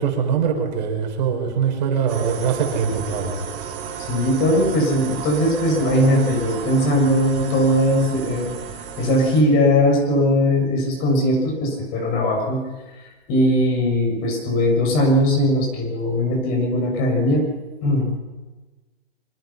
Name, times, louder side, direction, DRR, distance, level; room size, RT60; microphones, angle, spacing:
voice 1, 0.0-3.3, right 7 dB, 45° right, 2 dB, 6.0 m, -22 dB
sound 1, 2.1-9.4, right 7 dB, 30° right, 5.0 m, -33 dB
voice 2, 4.0-8.5 9.0-12.6 13.0-17.4 17.8-18.2, left 1 dB, 30° left, 2 dB, 6.6 m, -19 dB
25.0 x 25.0 x 5.8 m, 1.2 s
hypercardioid pair, 160°, 31 cm